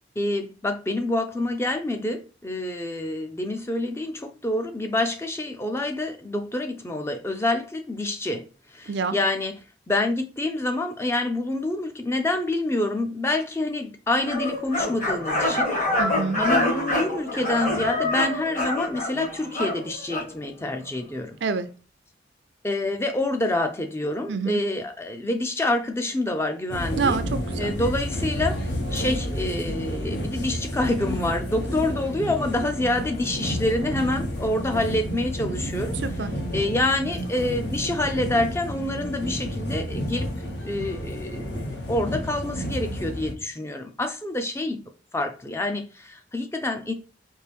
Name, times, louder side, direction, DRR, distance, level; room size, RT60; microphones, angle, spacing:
voice 1, 0.2-8.4 8.7-9.5 9.9-15.7 16.4-21.4 22.6-27.2 27.6-28.5 28.9-35.9 36.5-40.3 40.6-44.8 45.1-46.9, left 2 dB, 15° left, 0.4 m, -27 dB
voice 2, 8.9-9.2 16.0-16.4 21.4-21.7 24.3-24.6 27.0-27.7 36.0-36.3, right 5 dB, 75° right, 0.5 m, -27 dB
sound 1, 14.2-20.3, left 1 dB, 45° left, 1.6 m, -26 dB
sound 2, 26.7-43.3, equal, 70° left, 1.0 m, -30 dB
4.5 x 2.6 x 3.3 m
head